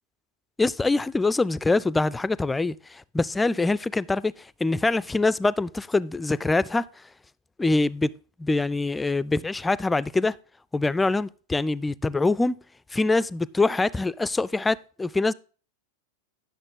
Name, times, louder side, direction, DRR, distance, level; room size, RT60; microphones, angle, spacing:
voice 1, 0.6-4.3 4.6-6.9 7.6-8.1 8.4-10.4 10.7-12.6 12.9-15.3, left 3 dB, 10° left, 0.3 m, -24 dB
11.0 x 6.5 x 3.7 m
figure-of-eight pair, 90°, 0 cm